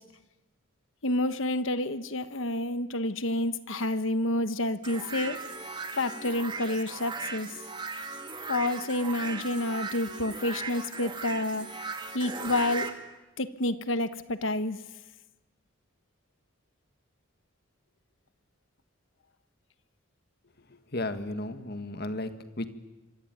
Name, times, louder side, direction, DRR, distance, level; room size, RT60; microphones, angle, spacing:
voice 1, 1.0-5.4 6.0-7.5 8.5-11.7 12.1-12.9 13.4-14.8, left 1 dB, 70° left, 12 dB, 1.3 m, -29 dB
sound 1, 4.8-12.9, right 4 dB, 20° right, 2.2 m, -37 dB
voice 2, 20.7-22.7, left 1 dB, 50° left, 9 dB, 1.8 m, -34 dB
26.0 x 24.0 x 9.3 m, 1.1 s
head